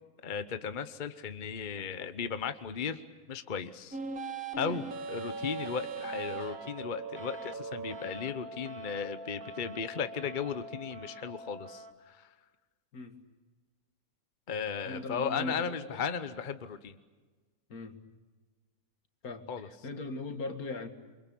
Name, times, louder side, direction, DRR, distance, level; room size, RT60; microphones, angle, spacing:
voice 1, 0.2-3.0 3.3-4.0 4.6-12.3 14.5-17.0 19.5-19.7, left 6 dB, 35° left, 11 dB, 1.1 m, -36 dB
sound 1, 3.9-11.9, right 3 dB, 75° right, 2.2 m, -41 dB
voice 2, 14.9-16.1 17.7-18.0 19.2-20.9, left 2 dB, 80° left, 7 dB, 2.4 m, -40 dB
28.0 x 24.0 x 8.5 m, 1.3 s
omnidirectional pair, 1.5 m